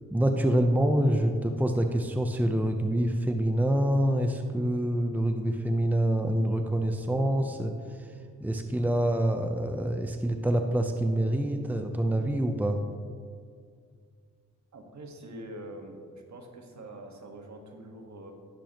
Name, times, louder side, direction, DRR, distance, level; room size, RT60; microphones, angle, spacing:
voice 1, 0.1-7.7 8.0-8.1 8.4-12.8, right 1 dB, 5° right, 5 dB, 0.8 m, -26 dB
voice 2, 14.7-16.0 16.3-18.3, right 1 dB, 60° right, 3 dB, 1.7 m, -44 dB
18.0 x 6.8 x 3.1 m, 2.1 s
cardioid pair, 60°, 32 cm